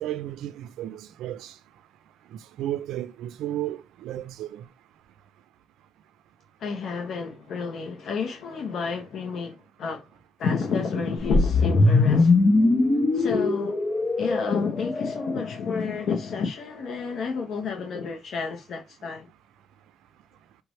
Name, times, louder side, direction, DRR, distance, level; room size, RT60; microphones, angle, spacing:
voice 1, 0.0-1.5 2.6-4.6, right 12 dB, 80° right, 0.4 m, -33 dB
voice 2, 6.6-10.1 10.4-12.3 13.1-13.8 14.2-19.3, left 5 dB, 65° left, 0.9 m, -30 dB
Take off, 11.3-15.5, left 3 dB, 30° left, 0.8 m, -21 dB
5.1 x 3.1 x 3.1 m
cardioid pair, 95°, 0 cm